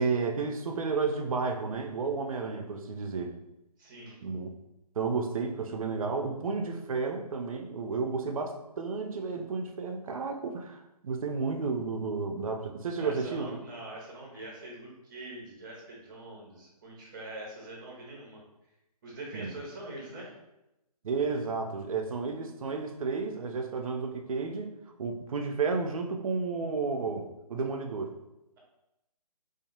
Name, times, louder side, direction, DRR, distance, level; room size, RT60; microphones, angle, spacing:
voice 1, 0.0-3.4 4.2-4.5 5.0-13.5 19.3-19.5 21.0-24.7 25.0-28.1, right 4 dB, 60° right, 4 dB, 0.4 m, -32 dB
voice 2, 3.8-4.2 13.0-18.4 19.0-20.3, right 2 dB, 30° right, -2 dB, 0.7 m, -43 dB
2.6 x 2.4 x 2.4 m, 0.92 s
figure-of-eight pair, 150°, 20 cm